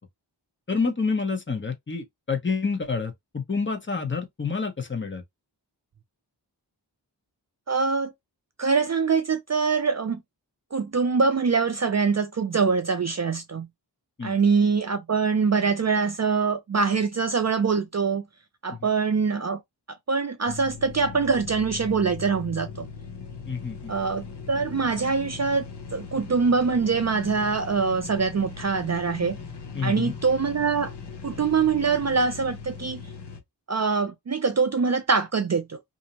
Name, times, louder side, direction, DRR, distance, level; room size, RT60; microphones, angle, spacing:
voice 1, 0.7-5.2 14.2-14.4 23.5-23.9 29.7-30.1, left 4 dB, 25° left, 0.8 m, -28 dB
voice 2, 7.7-8.1 8.6-10.2 10.7-13.7 14.2-18.2 18.6-19.6 20.1-22.9 23.9-25.7 25.9-29.4 29.8-30.9 31.2-33.0 33.7-35.8, right 5 dB, 40° right, 0.4 m, -24 dB
sound 1, 20.5-33.4, left 5 dB, 65° left, 0.9 m, -39 dB
2.6 x 2.0 x 2.8 m
wide cardioid pair, 55°, 43 cm